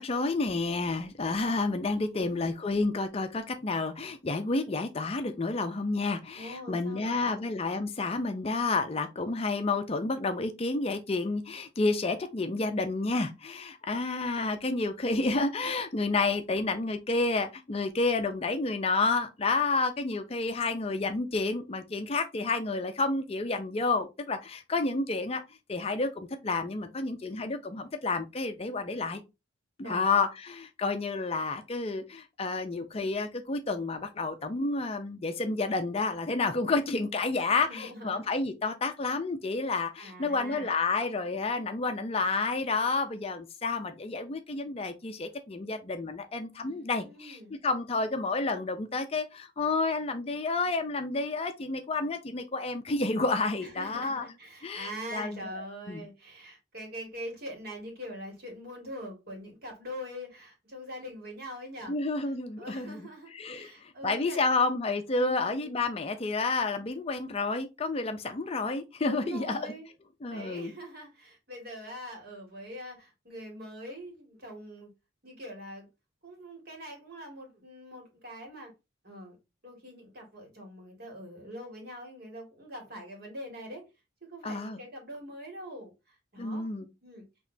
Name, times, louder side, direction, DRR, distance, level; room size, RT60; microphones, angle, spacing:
voice 1, 0.0-25.4 25.7-29.2 29.8-54.2 54.6-56.0 61.9-63.1 63.3-69.7 70.2-70.7 84.4-84.8 86.4-86.9, left 3 dB, 30° left, 0.5 m, -30 dB
voice 2, 2.1-2.5 6.3-7.4 29.8-30.0 37.5-38.2 40.0-40.8 46.6-47.5 53.6-64.8 65.2-65.7 69.0-69.9 70.2-74.9 75.2-75.9 76.2-78.7 79.0-79.4 79.6-83.8 84.2-86.7 87.0-87.2, equal, 50° right, 1.9 m, -43 dB
6.2 x 3.0 x 2.6 m
head